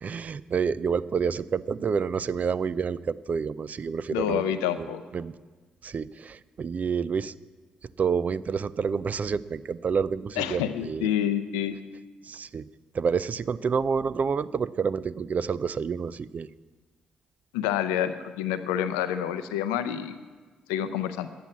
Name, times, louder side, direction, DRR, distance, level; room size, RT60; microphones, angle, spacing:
voice 1, 0.0-4.9 5.1-5.3 5.8-7.3 8.0-11.1 12.2-12.7 12.9-16.5, right 6 dB, 45° right, 17 dB, 0.4 m, -28 dB
voice 2, 4.1-5.0 10.4-11.8 17.5-20.2 20.7-21.3, left 10 dB, 80° left, 11 dB, 0.6 m, -28 dB
10.5 x 9.0 x 7.3 m, 1.4 s
hypercardioid pair, 40°, 4 cm